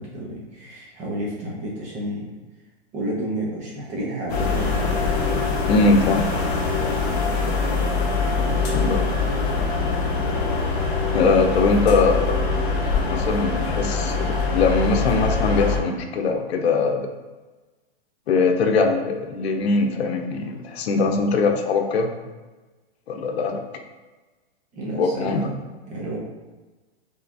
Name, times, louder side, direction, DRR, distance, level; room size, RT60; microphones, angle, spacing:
voice 1, 0.0-2.3 2.9-4.8 8.3-9.0 24.7-25.5 25.9-26.2, right 1 dB, 25° right, -4 dB, 1.2 m, -31 dB
sound 1, 4.3-15.8, left 4 dB, 35° left, 1.4 m, -23 dB
voice 2, 5.6-6.3 8.7-9.0 11.1-12.4 13.0-17.1 18.3-22.1 23.1-23.6 24.9-25.4, left 4 dB, 80° left, 4 dB, 0.8 m, -21 dB
5.6 x 3.4 x 2.7 m, 1.2 s
hypercardioid pair, 150°, 31 cm